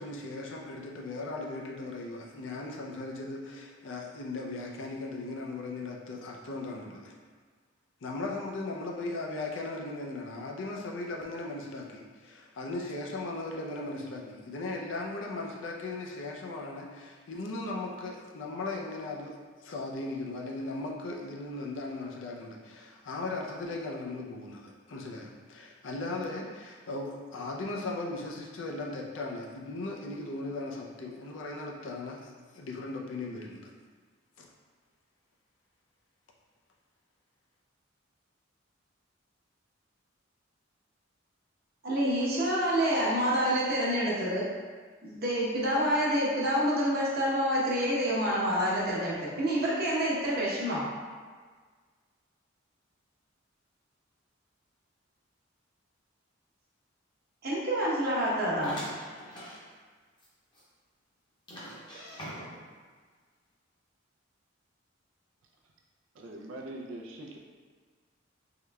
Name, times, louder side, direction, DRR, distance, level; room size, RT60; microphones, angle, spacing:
voice 1, 0.0-7.1 8.0-33.6 34.4-34.5, left 2 dB, 70° left, -1 dB, 0.5 m, -38 dB
voice 2, 41.8-44.4 45.0-50.9 57.4-58.9, equal, 55° right, -6 dB, 0.9 m, -27 dB
sound 1, 58.6-59.6 60.2-60.3 60.5-60.6 61.5-62.7, equal, 20° left, 0.8 m, -42 dB
voice 3, 66.2-67.4, right 1 dB, 85° right, 0 dB, 0.5 m, -42 dB
3.7 x 3.1 x 2.3 m, 1.5 s
head